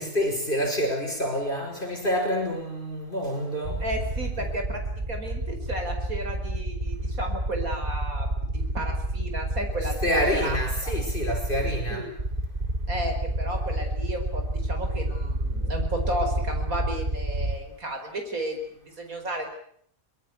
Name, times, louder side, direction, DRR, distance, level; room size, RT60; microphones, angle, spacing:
voice 1, 0.0-3.9 9.8-12.1, equal, 35° left, 5.4 m, -27 dB
sound 1, 3.6-17.6, right 1 dB, 35° right, 3.6 m, -29 dB
voice 2, 3.8-4.8 5.1-10.6 10.8-10.9 11.9-12.1 12.9-19.5, right 1 dB, 70° right, 5.4 m, -33 dB
24.0 x 21.0 x 8.3 m
omnidirectional pair, 1.5 m